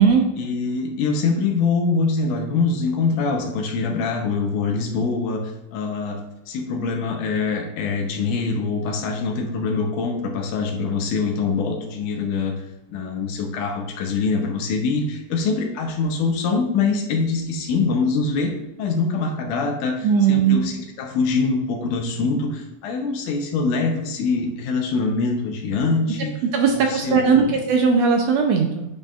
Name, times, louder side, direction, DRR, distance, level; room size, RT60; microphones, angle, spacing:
voice 1, 0.4-5.4 5.7-6.2 6.5-12.5 12.9-18.5 18.8-26.3 26.7-27.6, left 4 dB, 85° left, 2 dB, 2.3 m, -24 dB
voice 2, 20.0-20.6 26.5-28.9, right 6 dB, 75° right, 3 dB, 1.6 m, -18 dB
9.5 x 5.2 x 2.4 m, 0.94 s
omnidirectional pair, 3.5 m